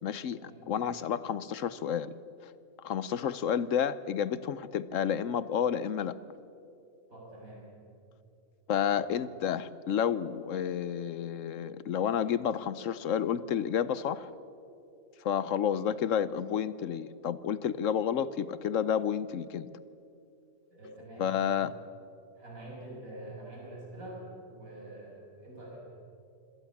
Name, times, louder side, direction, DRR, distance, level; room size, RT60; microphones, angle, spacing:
voice 1, 0.0-2.1 2.8-6.2 8.7-14.3 15.2-19.7 21.2-21.7, left 8 dB, 70° left, 16 dB, 1.1 m, -30 dB
voice 2, 7.1-7.7 8.7-8.9 20.7-21.5 22.4-25.8, right 1 dB, 85° right, -3 dB, 7.2 m, -46 dB
26.0 x 17.5 x 7.2 m, 2.6 s
omnidirectional pair, 1.4 m